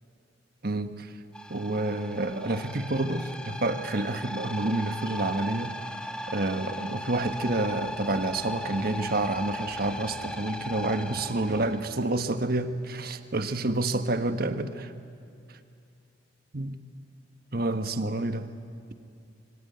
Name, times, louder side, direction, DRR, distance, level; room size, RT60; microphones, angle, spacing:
voice 1, 0.6-1.1 1.5-5.8 6.3-14.9 16.5-16.8 17.5-18.5, right 2 dB, 55° right, 9 dB, 1.3 m, -29 dB
sound 1, 1.3-12.1, left 1 dB, 5° left, 1.2 m, -37 dB
sound 2, 7.2-12.2, equal, 55° left, 5.2 m, -52 dB
25.5 x 24.0 x 9.6 m, 2.4 s
head